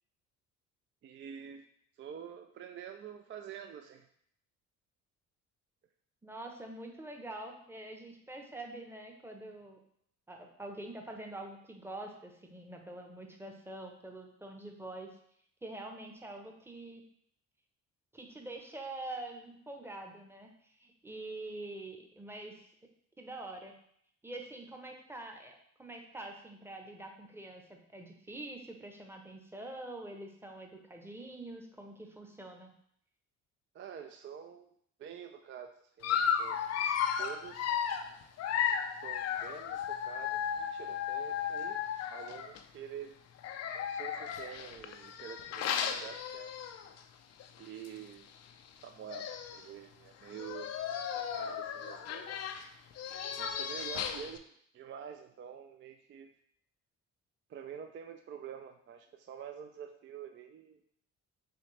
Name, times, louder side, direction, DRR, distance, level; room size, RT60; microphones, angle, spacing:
voice 1, 1.0-1.6 2.0-4.1 33.7-34.7 35.0-36.6 37.2-37.8 39.0-41.8 42.1-43.1 43.7-46.5 47.6-48.3 48.8-50.7 51.1-52.3 53.4-54.4 54.7-56.3 57.5-60.8, right 8 dB, 35° right, 5 dB, 0.4 m, -47 dB
voice 2, 6.2-9.8 10.3-15.1 15.6-17.0 18.1-22.7 23.2-23.7 24.2-32.7, right 2 dB, 5° right, 2 dB, 0.8 m, -45 dB
Dog, 36.0-42.6 43.4-47.0 47.4-47.6 47.9-48.0 48.8-48.9 49.1-49.7 50.3-54.4, left 8 dB, 45° left, 0.4 m, -35 dB
4.3 x 3.2 x 3.1 m, 0.69 s
supercardioid pair, 65°, 35 cm